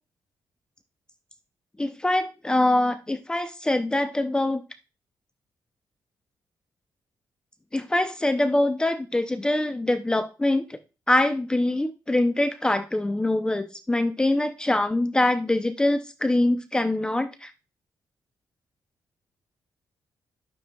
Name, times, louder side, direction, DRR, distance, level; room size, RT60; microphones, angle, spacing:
voice 1, 1.8-4.6 7.7-10.8 11.1-17.5, left 1 dB, 10° left, 9 dB, 0.5 m, -24 dB
12.0 x 6.8 x 2.3 m, 0.31 s
cardioid pair, 140°, 7 cm